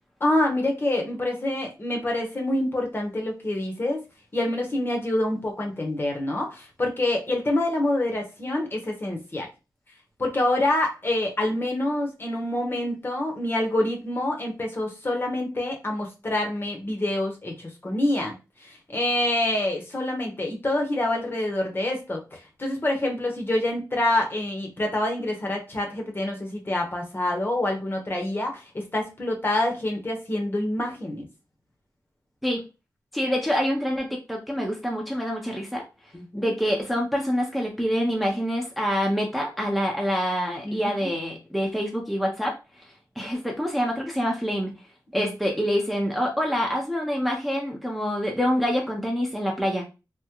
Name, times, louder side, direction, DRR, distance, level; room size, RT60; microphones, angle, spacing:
voice 1, 0.2-4.0 4.3-9.5 10.2-18.3 18.6-31.3 36.1-36.5 40.6-41.1 45.1-45.3, left 1 dB, 30° left, 1 dB, 0.9 m, -26 dB
voice 2, 33.1-35.8 36.3-42.5 43.2-44.7 45.1-49.8, equal, ahead, -1 dB, 0.6 m, -26 dB
3.5 x 2.1 x 2.9 m, 0.29 s
wide cardioid pair, 120°, 7 cm